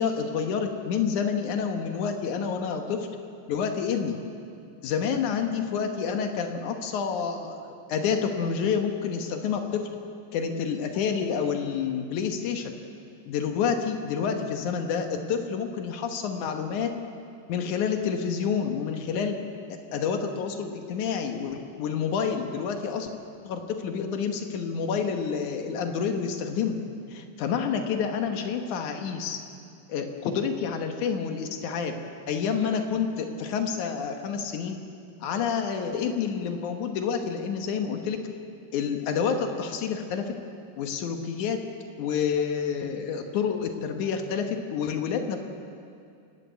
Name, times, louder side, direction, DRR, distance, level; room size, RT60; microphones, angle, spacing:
voice 1, 0.0-3.1 3.5-4.2 4.8-9.9 10.3-12.7 13.3-16.9 17.5-19.4 19.9-23.1 23.4-26.8 27.1-29.4 29.9-31.9 32.3-34.8 35.2-38.2 38.7-40.3 40.8-41.6 42.0-45.4, left 6 dB, 65° left, 5 dB, 1.9 m, -28 dB
27.5 x 12.0 x 8.3 m, 2.5 s
omnidirectional pair, 5.1 m